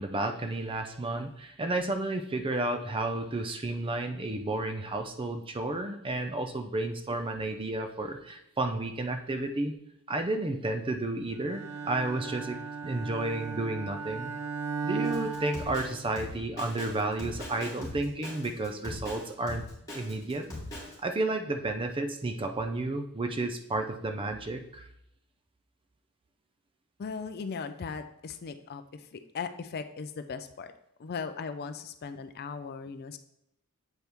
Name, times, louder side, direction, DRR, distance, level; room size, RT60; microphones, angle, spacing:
voice 1, 0.0-9.7 10.1-14.3 14.8-19.7 19.9-20.5 21.0-24.9, right 2 dB, 25° right, 6 dB, 0.5 m, -32 dB
Bowed string instrument, 11.5-16.4, right 5 dB, 80° right, 0.7 m, -36 dB
Drum kit, 15.0-21.0, left 1 dB, 15° left, 2.5 m, -40 dB
voice 2, 27.0-30.7 31.0-33.2, left 5 dB, 45° left, 10 dB, 0.4 m, -38 dB
7.9 x 4.5 x 3.4 m, 0.78 s
head